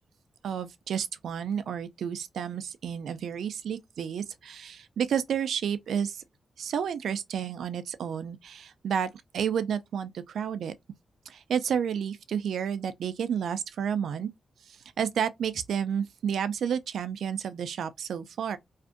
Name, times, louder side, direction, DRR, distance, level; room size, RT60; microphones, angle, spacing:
voice 1, 0.4-6.2 6.6-10.7 11.3-14.3 14.7-18.6, right 8 dB, 85° right, 0.3 m, -31 dB
2.5 x 2.4 x 2.4 m
cardioid pair, 100°, 0 cm